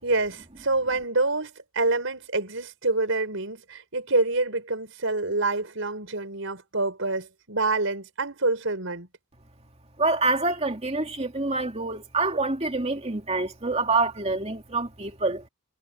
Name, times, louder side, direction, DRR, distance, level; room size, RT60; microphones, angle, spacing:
voice 1, 0.0-9.1, right 2 dB, 65° right, 5.5 m, -27 dB
voice 2, 10.0-15.4, right 3 dB, 30° right, 2.6 m, -26 dB
head